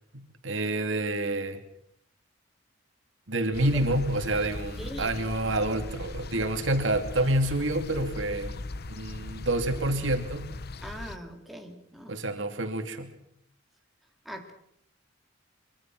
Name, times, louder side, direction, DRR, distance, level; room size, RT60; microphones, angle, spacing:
voice 1, 0.1-1.6 3.3-10.5 12.1-13.1, right 1 dB, 80° right, 6 dB, 2.8 m, -28 dB
sound 1, 3.5-11.2, left 2 dB, 55° left, 0.8 m, -39 dB
voice 2, 4.8-5.1 10.8-12.1 14.2-14.5, equal, ahead, 2 dB, 3.0 m, -41 dB
24.5 x 24.0 x 6.2 m, 0.72 s
head